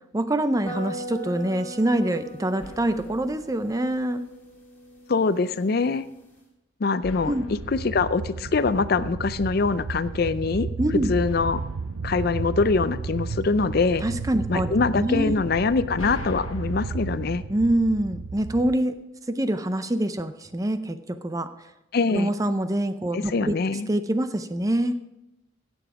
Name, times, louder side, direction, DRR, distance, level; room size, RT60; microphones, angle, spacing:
voice 1, 0.1-4.2 7.3-7.4 10.8-11.1 14.0-15.4 17.5-19.0 19.3-21.5 22.1-25.0, right 1 dB, 15° right, 10 dB, 0.5 m, -25 dB
sound 1, 0.7-6.4, equal, 10° left, 2.6 m, -40 dB
sound 2, 2.6-4.5 7.0-9.4 11.3-13.5 15.5-18.5, left 1 dB, 85° left, 1.3 m, -43 dB
voice 2, 5.1-6.1 6.8-10.7 11.1-11.6 12.0-14.0 14.5-17.4 21.9-22.3 23.1-23.9, left 4 dB, 45° left, 14 dB, 0.4 m, -24 dB
sound 3, 7.4-18.8, right 4 dB, 75° right, 0.5 m, -33 dB
16.5 x 7.1 x 4.8 m, 0.95 s
head